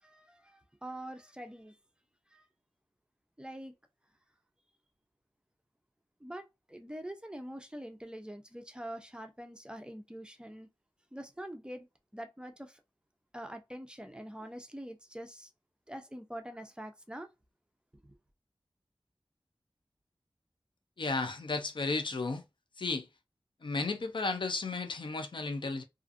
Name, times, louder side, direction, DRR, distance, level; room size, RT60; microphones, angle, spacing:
voice 1, 0.0-1.8 2.3-2.4 3.4-3.7 6.2-10.7 11.1-11.9 12.1-12.8 13.3-15.5 15.9-17.3 18.0-18.2, right 1 dB, 10° right, 0.5 m, -44 dB
voice 2, 21.0-22.4 22.8-23.1 23.6-25.8, left 3 dB, 65° left, 0.5 m, -33 dB
2.4 x 2.4 x 2.5 m
wide cardioid pair, 60°, 9 cm